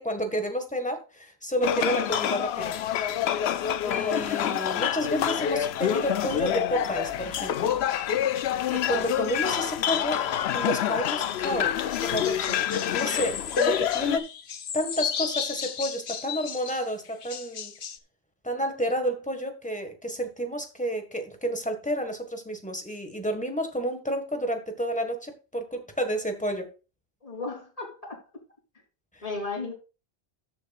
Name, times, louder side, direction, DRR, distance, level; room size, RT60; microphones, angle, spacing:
voice 1, 0.0-2.7 3.8-7.7 8.7-10.2 10.5-12.6 12.9-14.3 14.7-17.7 18.4-26.7 29.1-29.2, equal, 5° left, 1.7 m, -30 dB
sound 1, 1.6-14.2, left 10 dB, 90° left, 0.9 m, -27 dB
sound 2, 11.9-18.0, left 7 dB, 60° left, 1.0 m, -35 dB
voice 2, 27.2-28.2 29.2-29.7, left 3 dB, 35° left, 3.7 m, -34 dB
13.0 x 7.2 x 2.5 m
omnidirectional pair, 1.0 m